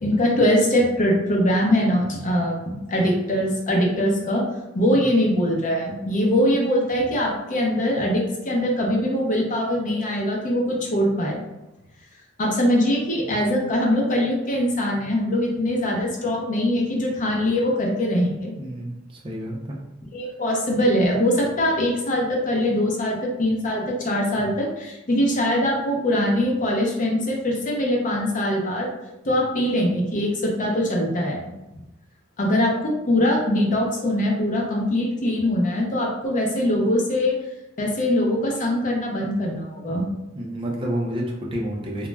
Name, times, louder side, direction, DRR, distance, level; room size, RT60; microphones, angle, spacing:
voice 1, 0.0-4.4 4.7-11.4 12.4-18.5 20.1-28.9 29.2-31.4 32.4-37.3 37.8-40.0, left 1 dB, 40° left, -1 dB, 0.5 m, -22 dB
voice 2, 18.6-19.8 40.3-42.1, equal, 25° right, -2 dB, 0.4 m, -29 dB
2.2 x 2.0 x 3.3 m, 0.99 s
head